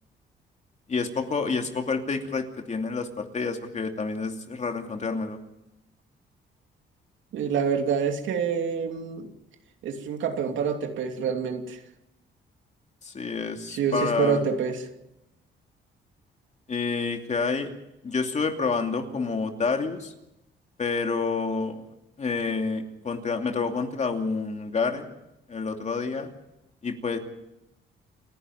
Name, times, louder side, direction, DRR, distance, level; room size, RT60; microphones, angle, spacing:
voice 1, 0.9-5.4 13.0-14.4 16.7-17.7 18.0-20.1 20.8-21.8 22.2-25.1 25.5-26.3 26.8-27.2, left 4 dB, 35° left, 4 dB, 2.7 m, -28 dB
voice 2, 7.3-9.3 9.8-11.8 13.7-14.9, right 6 dB, 80° right, 4 dB, 2.9 m, -27 dB
29.0 x 11.0 x 9.2 m, 0.90 s
cardioid pair, 110°, 19 cm